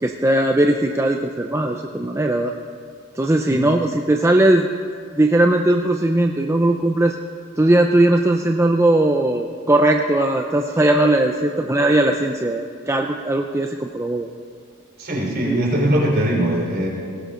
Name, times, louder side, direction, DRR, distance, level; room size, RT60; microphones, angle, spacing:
voice 1, 0.0-2.5 3.2-4.7 5.1-7.2 7.6-14.3 15.4-15.6, right 1 dB, 15° right, 3 dB, 0.5 m, -18 dB
voice 2, 15.0-16.9, right 1 dB, 50° right, -3 dB, 4.0 m, -20 dB
18.5 x 16.0 x 3.8 m, 2.3 s
head